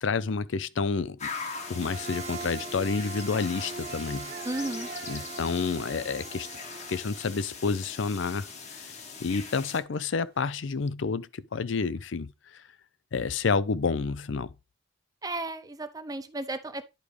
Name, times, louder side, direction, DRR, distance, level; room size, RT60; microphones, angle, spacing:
voice 1, 0.0-1.3 1.7-4.3 5.1-6.5 6.9-8.5 8.8-8.9 9.2-12.7 13.1-14.5, left 4 dB, 80° left, 0.5 m, -29 dB
sound 1, 1.2-9.8, left 5 dB, 35° left, 1.1 m, -41 dB
sound 2, 1.5-7.3, right 4 dB, 40° right, 1.1 m, -41 dB
sound 3, 3.4-9.3 9.7-10.8, right 4 dB, 55° right, 1.6 m, -54 dB
voice 2, 4.4-4.9 15.2-16.8, right 2 dB, 20° right, 0.6 m, -34 dB
10.5 x 4.9 x 3.2 m
head